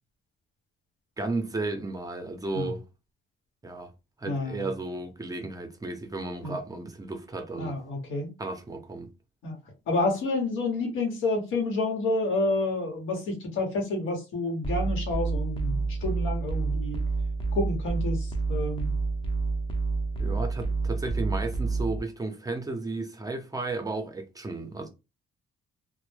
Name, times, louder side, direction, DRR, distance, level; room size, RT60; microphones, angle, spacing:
voice 1, 1.2-2.8 3.6-3.9 4.2-7.8 8.4-9.1 20.2-24.9, right 2 dB, 20° right, 0.5 m, -33 dB
voice 2, 4.2-4.7 6.4-6.6 7.6-8.3 9.4-9.6 9.9-17.0 17.6-19.0, left 2 dB, 80° left, 0.9 m, -29 dB
sound 1, 14.6-22.0, right 4 dB, 25° left, 0.5 m, -29 dB
2.0 x 2.0 x 3.1 m
cardioid pair, 90°, 20 cm